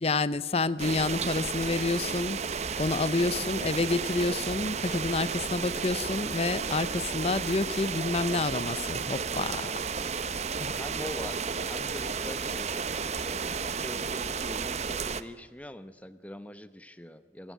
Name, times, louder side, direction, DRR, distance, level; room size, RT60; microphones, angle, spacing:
voice 1, 0.0-2.4 2.8-9.7 10.6-10.7, left 3 dB, 35° left, 17 dB, 0.7 m, -29 dB
sound 1, 0.8-15.2, right 5 dB, 40° right, 0.8 m, -33 dB
voice 2, 3.2-3.6 10.8-17.5, left 1 dB, 10° left, 12 dB, 0.9 m, -44 dB
25.5 x 15.5 x 9.3 m, 1.5 s
head